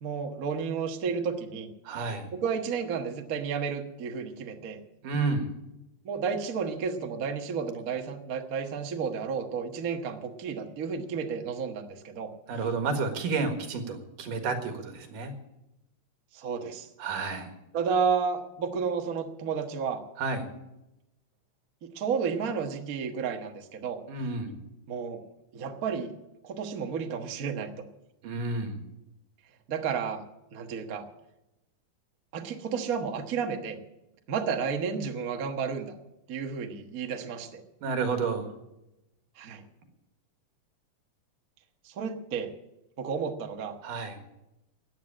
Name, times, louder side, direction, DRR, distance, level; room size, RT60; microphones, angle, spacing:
voice 1, 0.0-1.7 2.3-4.8 6.0-12.3 16.3-16.9 17.7-20.0 21.8-24.0 24.9-25.2 25.5-26.1 26.4-27.7 29.7-30.2 30.5-31.0 32.3-33.8 34.3-36.0 36.3-37.6 39.4-39.6 41.8-42.5 43.0-43.7, right 6 dB, 50° right, 4 dB, 1.0 m, -32 dB
voice 2, 1.8-2.3 5.0-5.5 12.5-15.3 17.0-17.5 20.2-20.5 24.1-24.6 28.2-28.8 37.8-38.5 43.8-44.2, right 4 dB, 85° right, 6 dB, 3.3 m, -30 dB
14.5 x 9.2 x 8.6 m, 0.93 s
omnidirectional pair, 3.7 m